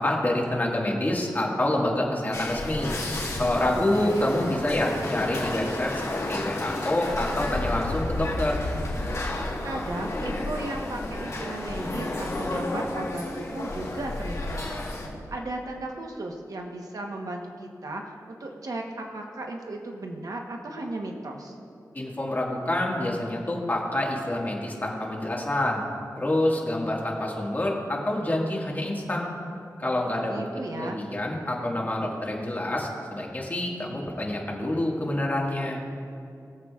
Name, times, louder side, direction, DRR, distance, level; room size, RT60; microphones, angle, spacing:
voice 1, 0.0-2.9 3.4-8.6 21.9-25.8 26.2-29.3 29.8-30.4 30.7-35.8, left 1 dB, 30° left, -2 dB, 1.8 m, -27 dB
sound 1, 2.3-15.1, left 2 dB, 55° left, 2.2 m, -31 dB
voice 2, 3.7-4.3 9.6-14.8 15.3-21.6 30.2-31.1, right 2 dB, 65° right, 1 dB, 1.0 m, -35 dB
22.0 x 7.5 x 2.4 m, 2.5 s
wide cardioid pair, 110°, 7 cm